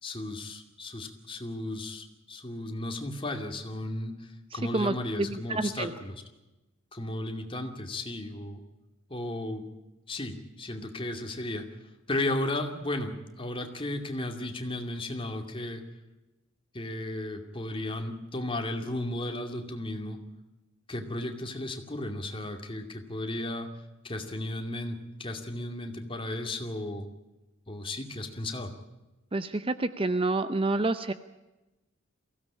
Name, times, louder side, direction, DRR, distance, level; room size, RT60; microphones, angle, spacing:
voice 1, 0.0-6.2 6.9-8.6 9.1-9.7 10.1-11.6 12.1-15.8 16.7-20.2 20.9-23.7 24.0-27.1 27.7-28.7, left 1 dB, 25° left, 4 dB, 2.4 m, -34 dB
voice 2, 4.5-5.9 29.3-31.1, right 2 dB, 25° right, 12 dB, 0.7 m, -28 dB
23.0 x 16.5 x 8.5 m, 1.0 s
head